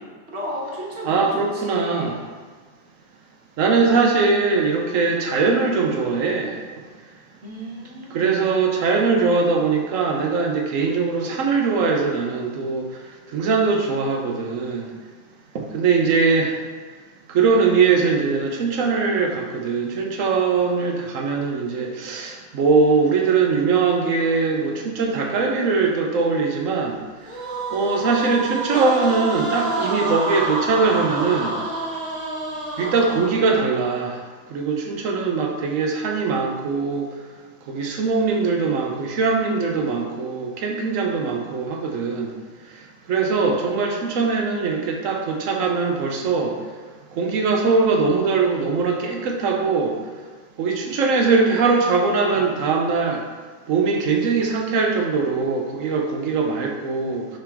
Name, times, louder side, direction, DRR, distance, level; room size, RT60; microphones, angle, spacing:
voice 1, 0.3-2.2 7.4-8.4, equal, 55° right, -4 dB, 1.7 m, -33 dB
voice 2, 1.1-2.1 3.6-6.7 8.1-12.9 13.3-14.9 15.5-16.6 17.3-27.0 27.7-31.6 32.8-34.2 34.5-37.1 37.7-42.3 43.1-46.6 47.1-50.0 50.6-53.2 53.7-57.3, right 4 dB, 85° right, 1 dB, 1.1 m, -21 dB
sound 1, 27.3-33.6, right 2 dB, 5° left, 1.6 m, -28 dB
5.9 x 5.7 x 3.5 m, 1.5 s
omnidirectional pair, 1.3 m